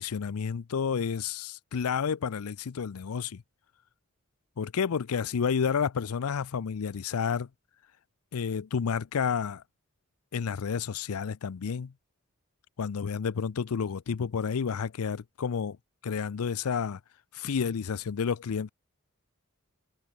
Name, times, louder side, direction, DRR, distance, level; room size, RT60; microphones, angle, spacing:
voice 1, 0.0-3.4 4.6-7.5 8.3-9.6 10.3-11.9 12.8-15.8 16.0-17.0 17.3-18.7, left 6 dB, 85° left, 0.5 m, -30 dB
head